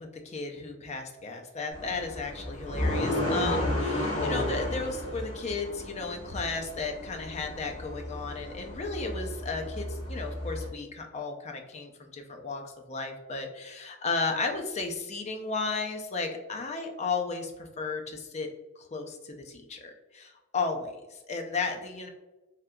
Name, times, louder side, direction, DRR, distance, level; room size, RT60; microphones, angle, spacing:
voice 1, 0.0-18.5 18.8-22.1, left 4 dB, 35° left, 3 dB, 0.5 m, -34 dB
sound 1, 1.7-10.7, left 1 dB, 70° left, 1.1 m, -33 dB
3.5 x 2.7 x 2.2 m, 1.0 s
head